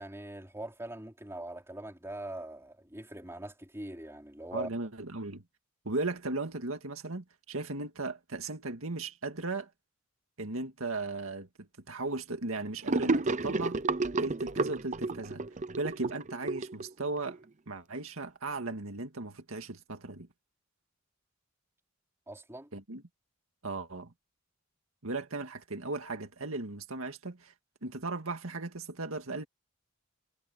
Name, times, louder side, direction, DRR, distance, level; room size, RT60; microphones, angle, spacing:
voice 1, 0.0-4.7 22.3-22.7, right 1 dB, 15° right, 4.3 m, -42 dB
voice 2, 4.5-5.4 5.9-9.7 10.4-13.8 14.2-15.4 15.8-17.4 17.7-20.3 22.7-23.0 23.6-24.1 25.0-27.5 27.8-29.4, right 3 dB, 85° right, 2.1 m, -36 dB
Gurgling / Sink (filling or washing), 12.9-17.3, right 3 dB, 35° right, 0.8 m, -31 dB
head